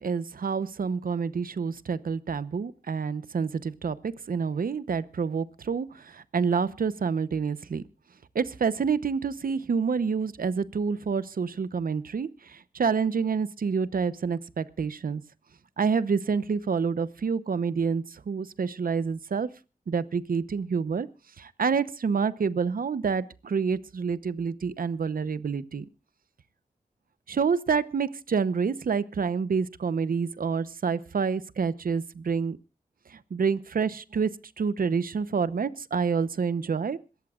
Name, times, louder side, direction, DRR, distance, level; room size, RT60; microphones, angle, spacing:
voice 1, 0.0-7.8 8.3-15.2 15.8-19.5 19.9-21.1 21.4-25.8 27.3-32.6 33.1-34.3 34.6-37.0, right 5 dB, 80° right, 15 dB, 0.8 m, -28 dB
26.5 x 14.0 x 2.4 m, 0.31 s
cardioid pair, 55°, 15 cm